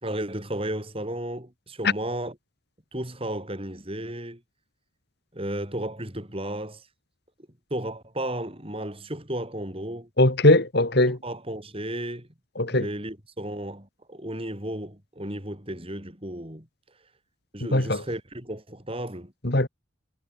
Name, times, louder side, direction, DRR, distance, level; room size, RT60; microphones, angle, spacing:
voice 1, 0.0-2.3 2.9-4.4 5.3-6.8 7.7-10.1 11.2-12.3 12.7-16.7 17.5-19.3, right 1 dB, 25° right, 4.3 m, -33 dB
voice 2, 10.2-11.2 12.6-12.9 17.7-18.0 19.4-19.7, left 2 dB, 50° left, 2.4 m, -20 dB
head